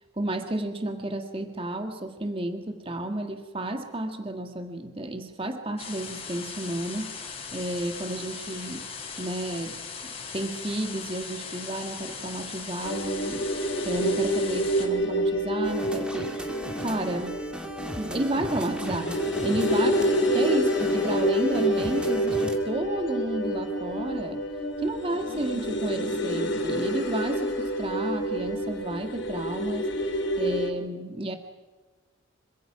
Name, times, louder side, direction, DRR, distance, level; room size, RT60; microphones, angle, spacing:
voice 1, 0.2-7.1 7.5-8.9 9.2-9.8 10.3-13.5 13.8-16.5 16.8-17.4 18.0-19.9 20.2-24.4 24.8-29.9 30.4-31.4, right 1 dB, 25° right, 6 dB, 1.7 m, -31 dB
sound 1, 5.8-14.9, left 6 dB, 30° left, 4.2 m, -39 dB
sound 2, 12.8-30.7, equal, 60° left, 4.4 m, -28 dB
sound 3, 15.6-22.6, equal, 5° right, 2.3 m, -37 dB
26.5 x 24.5 x 6.0 m, 1.3 s
head